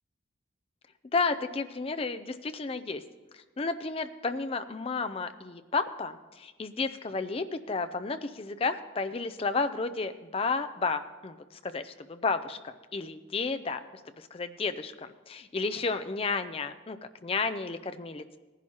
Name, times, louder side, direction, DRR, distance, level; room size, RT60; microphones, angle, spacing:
voice 1, 1.1-3.0 3.3-13.8 14.2-18.4, left 4 dB, 30° left, 10 dB, 0.4 m, -32 dB
18.0 x 11.0 x 2.9 m, 1.3 s
head